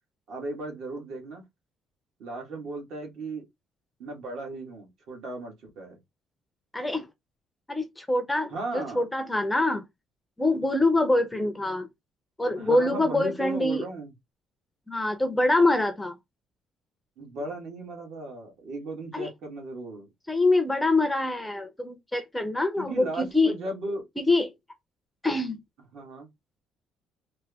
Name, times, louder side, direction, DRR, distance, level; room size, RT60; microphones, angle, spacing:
voice 1, 0.3-1.4 2.2-3.4 4.0-6.0 8.5-9.0 12.6-14.1 17.2-20.1 22.7-24.0 25.9-26.3, right 2 dB, 65° right, 1.5 m, -36 dB
voice 2, 6.7-7.1 7.7-9.8 10.4-11.9 12.4-13.8 14.9-16.2 19.1-19.3 20.3-23.5 24.2-24.5 25.2-25.6, left 2 dB, 5° left, 0.5 m, -25 dB
3.3 x 2.1 x 3.3 m
cardioid pair, 160°, 0 cm